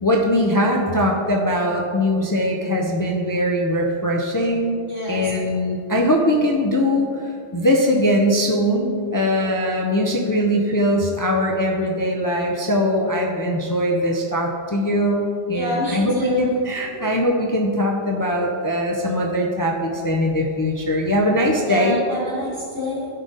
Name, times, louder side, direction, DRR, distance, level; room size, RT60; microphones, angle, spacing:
voice 1, 0.0-4.8 5.1-7.1 7.5-22.0, equal, 30° left, -1 dB, 0.3 m, -21 dB
voice 2, 4.9-5.3 15.5-17.0 21.6-23.1, equal, 50° right, -8 dB, 2.1 m, -27 dB
11.0 x 3.9 x 3.9 m, 2.4 s
omnidirectional pair, 1.1 m